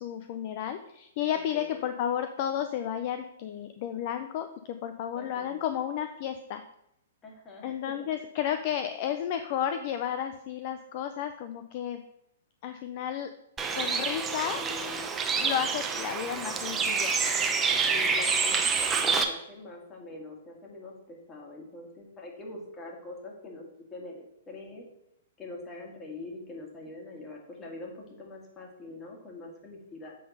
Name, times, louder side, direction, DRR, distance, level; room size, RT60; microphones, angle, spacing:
voice 1, 0.0-6.6 7.6-12.0 12.6-13.3 13.7-14.6 15.4-17.1, left 9 dB, 45° left, 8 dB, 0.5 m, -32 dB
voice 2, 1.3-1.8 5.2-5.6 7.2-8.1 14.5-15.1 17.9-23.6 23.9-24.8 25.4-30.2, left 2 dB, 20° left, 0 dB, 2.0 m, -44 dB
Bird, 13.6-19.2, right 5 dB, 15° right, 0.7 m, -27 dB
7.6 x 3.9 x 5.3 m, 0.79 s
figure-of-eight pair, 115°, 0 cm